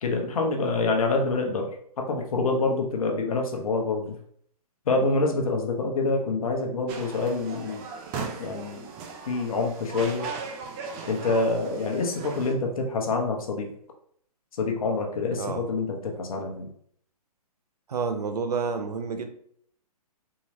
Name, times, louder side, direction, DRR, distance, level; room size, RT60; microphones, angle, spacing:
voice 1, 0.0-1.7 2.0-4.1 4.9-7.9 8.4-8.9 9.3-10.3 11.1-13.7 14.6-16.7, left 3 dB, 60° left, 2 dB, 0.9 m, -26 dB
sound 1, 6.9-12.5, right 5 dB, 20° right, 0.4 m, -38 dB
voice 2, 17.9-19.3, right 5 dB, 80° right, 7 dB, 0.6 m, -29 dB
3.8 x 2.9 x 2.7 m, 0.64 s
hypercardioid pair, 135°, 20 cm